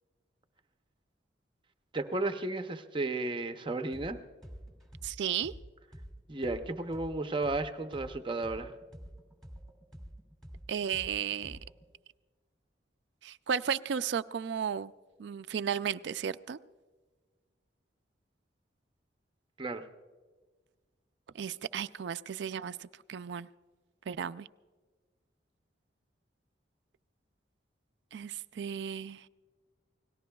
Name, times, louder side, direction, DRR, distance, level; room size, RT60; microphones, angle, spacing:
voice 1, 1.9-4.2 6.3-8.7 19.6-19.8, right 2 dB, 25° right, 7 dB, 0.7 m, -33 dB
sound 1, 3.9-4.1 4.4-8.1 8.4-11.8, equal, ahead, 2.0 m, -48 dB
voice 2, 5.0-5.5 10.7-11.6 13.2-14.9 15.2-16.6 21.3-23.5 24.1-24.5 28.1-29.3, right 7 dB, 70° right, 13 dB, 0.4 m, -34 dB
28.5 x 18.5 x 2.3 m, 1.4 s
head